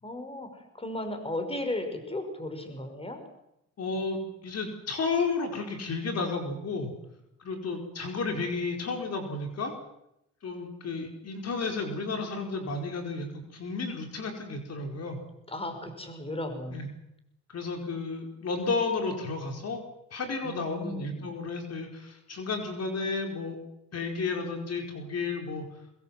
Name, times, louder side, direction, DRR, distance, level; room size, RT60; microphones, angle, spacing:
voice 1, 0.0-3.2 15.5-16.8 20.4-21.3, left 1 dB, 20° left, 7 dB, 5.5 m, -35 dB
voice 2, 3.8-6.9 7.4-9.7 10.4-15.2 16.7-16.9 17.5-19.8 20.1-23.6 23.9-25.7, left 4 dB, 55° left, 3 dB, 4.9 m, -32 dB
23.0 x 21.5 x 7.8 m, 0.81 s
cardioid pair, 90°, 30 cm